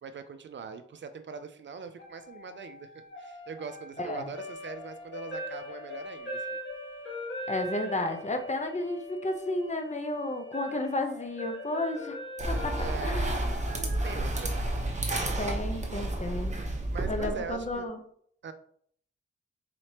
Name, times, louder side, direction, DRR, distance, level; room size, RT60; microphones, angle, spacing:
voice 1, 0.0-6.5 12.8-14.9 16.5-17.9 18.4-18.5, right 5 dB, 60° right, 9 dB, 0.5 m, -42 dB
sound 1, 2.0-16.1, left 1 dB, 65° left, 1.3 m, -42 dB
voice 2, 4.0-4.3 7.5-12.1 12.5-12.7 13.0-13.3 15.4-16.6 17.0-18.0, left 1 dB, 35° left, 5 dB, 0.8 m, -32 dB
sound 2, 12.4-17.7, right 1 dB, 35° right, 0.9 m, -31 dB
4.1 x 3.1 x 2.9 m, 0.62 s
cardioid pair, 50°, 21 cm